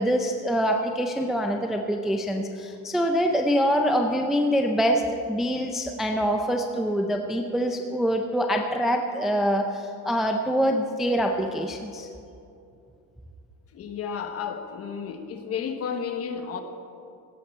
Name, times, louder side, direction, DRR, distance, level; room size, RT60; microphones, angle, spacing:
voice 1, 0.0-12.1, equal, ahead, 3 dB, 0.4 m, -25 dB
voice 2, 13.7-16.6, left 7 dB, 40° left, 6 dB, 1.1 m, -32 dB
17.0 x 13.0 x 4.3 m, 2.6 s
cardioid pair, 165°, 37 cm